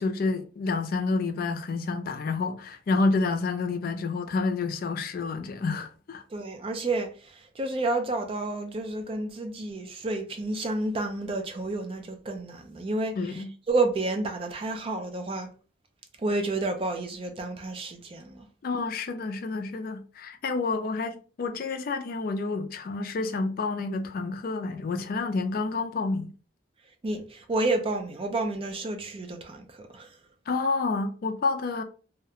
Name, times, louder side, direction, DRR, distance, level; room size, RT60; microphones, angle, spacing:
voice 1, 0.0-6.2 13.2-13.5 18.6-26.3 30.5-31.8, left 3 dB, 50° left, 0.3 m, -29 dB
voice 2, 6.3-15.5 16.2-18.5 27.0-30.2, right 2 dB, 30° right, 0.3 m, -30 dB
2.4 x 2.1 x 2.8 m
head